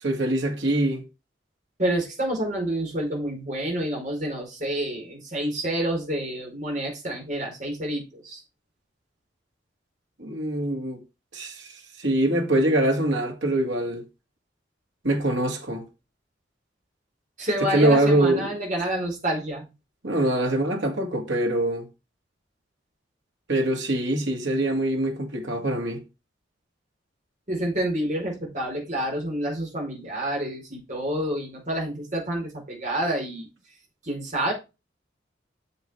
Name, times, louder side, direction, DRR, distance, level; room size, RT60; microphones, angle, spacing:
voice 1, 0.0-1.0 10.2-11.0 11.3-11.7 12.0-14.0 15.0-15.9 17.7-18.5 20.0-21.9 23.5-26.0, right 1 dB, 80° right, 2.5 m, -24 dB
voice 2, 1.8-8.4 17.4-19.7 27.5-33.5 34.0-34.5, right 1 dB, 40° right, 4.6 m, -28 dB
8.1 x 7.2 x 3.4 m
head